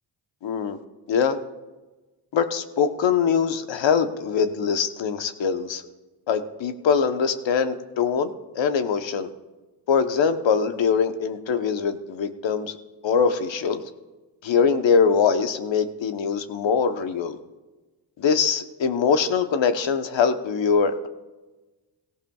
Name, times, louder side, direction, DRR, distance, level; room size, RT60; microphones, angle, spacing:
voice 1, 0.4-0.8 1.1-1.4 2.3-5.8 6.3-9.3 9.9-12.7 13.0-13.8 14.4-17.4 18.2-21.1, left 6 dB, 70° left, 8 dB, 1.1 m, -23 dB
17.0 x 14.5 x 2.4 m, 1.2 s
supercardioid pair, 55°, 47 cm